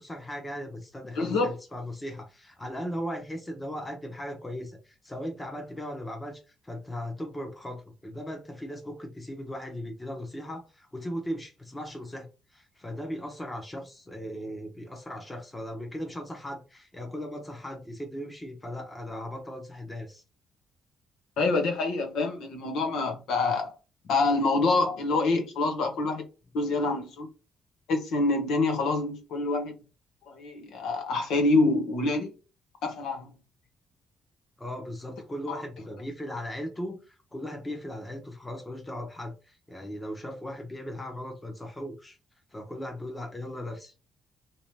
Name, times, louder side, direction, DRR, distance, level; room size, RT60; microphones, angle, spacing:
voice 1, 0.0-12.3 12.5-20.2 34.6-42.2 42.5-43.9, equal, 15° left, 0.9 m, -38 dB
voice 2, 1.2-1.5 21.4-23.7 24.1-26.2 26.5-27.3 27.9-29.7 30.3-32.3 32.8-33.3 35.5-35.6, left 3 dB, 85° left, 1.1 m, -26 dB
3.1 x 2.9 x 3.2 m
cardioid pair, 150°, 0 cm